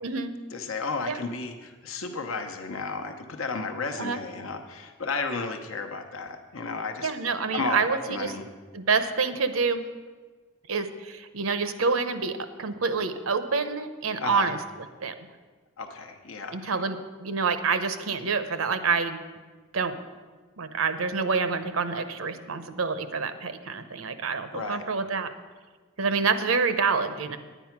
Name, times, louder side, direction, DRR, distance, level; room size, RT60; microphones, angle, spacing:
voice 1, 0.0-0.3 1.0-1.2 4.0-4.2 7.0-8.3 8.7-9.8 10.7-15.1 16.5-19.2 19.7-20.0 20.6-25.3 26.0-27.4, right 5 dB, 85° right, 11 dB, 0.8 m, -27 dB
voice 2, 0.5-7.1 7.5-8.4 14.2-14.5 15.8-16.7 24.5-24.8, left 4 dB, 75° left, 5 dB, 0.9 m, -33 dB
10.0 x 9.2 x 5.9 m, 1.4 s
head